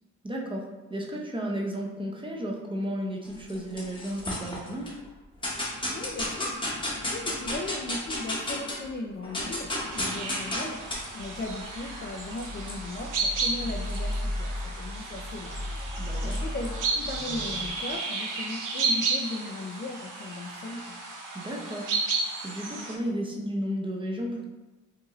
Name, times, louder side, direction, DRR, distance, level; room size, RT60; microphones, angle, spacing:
voice 1, 0.2-4.9 16.0-16.4 21.3-21.9 22.4-24.4, equal, 15° right, -1 dB, 0.6 m, -33 dB
sound 1, 3.3-4.9 5.4-8.9 9.2-17.7, left 1 dB, 15° left, 0.9 m, -34 dB
voice 2, 5.9-10.8 11.1-21.0, left 2 dB, 35° left, 1 dB, 0.4 m, -37 dB
sound 2, 9.9-22.9, right 3 dB, 75° right, 0.8 m, -33 dB
4.7 x 2.6 x 3.0 m, 1.1 s
cardioid pair, 115°, 32 cm